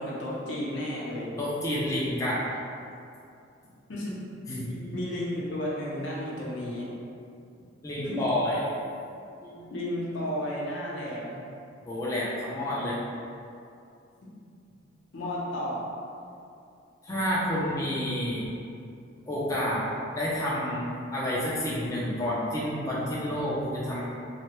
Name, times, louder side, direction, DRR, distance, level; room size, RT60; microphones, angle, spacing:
voice 1, 0.0-1.3 3.9-4.1 4.9-6.8 8.0-8.2 9.7-11.4 15.1-15.8, left 1 dB, 75° left, -5 dB, 0.7 m, -32 dB
voice 2, 1.4-2.4 4.5-5.0 7.8-8.6 9.4-9.7 11.8-13.0 17.0-18.4 19.3-24.0, left 1 dB, 15° left, -8 dB, 0.4 m, -29 dB
3.1 x 2.1 x 2.9 m, 2.5 s
head